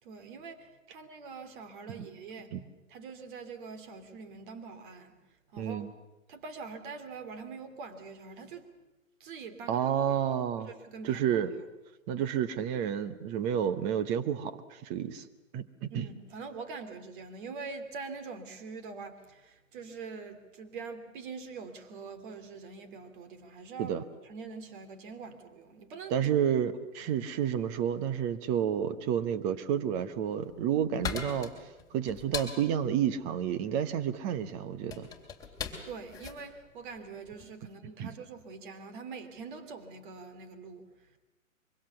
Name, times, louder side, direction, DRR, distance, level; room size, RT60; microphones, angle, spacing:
voice 1, 0.0-2.5 2.9-5.2 5.5-6.0 6.3-8.7 9.2-9.9 10.6-11.5 15.9-26.1 27.0-27.1 35.6-41.2, right 4 dB, 35° right, 9 dB, 2.7 m, -44 dB
voice 2, 5.6-5.9 9.7-10.7 11.0-11.5 12.1-15.2 15.5-16.1 23.8-24.0 26.1-31.6 31.9-35.1 38.0-38.1, right 9 dB, 15° right, 12 dB, 0.8 m, -30 dB
sound 1, 30.1-37.6, left 6 dB, 10° left, 2.9 m, -41 dB
25.0 x 23.5 x 7.1 m, 1.1 s
figure-of-eight pair, 130°, 41 cm